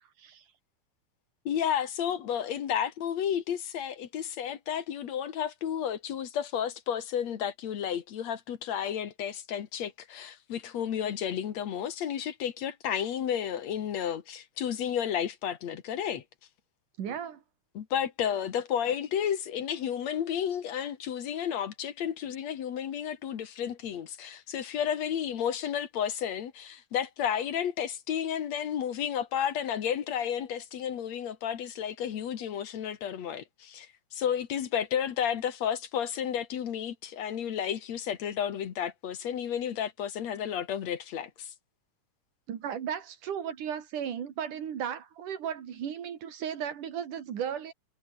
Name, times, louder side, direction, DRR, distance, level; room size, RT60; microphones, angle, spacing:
voice 1, 1.5-16.2 17.1-17.2 17.7-41.5, left 9 dB, 65° left, 2.7 m, -32 dB
voice 2, 17.0-17.4 42.5-47.7, right 8 dB, 85° right, 3.9 m, -35 dB
omnidirectional pair, 3.5 m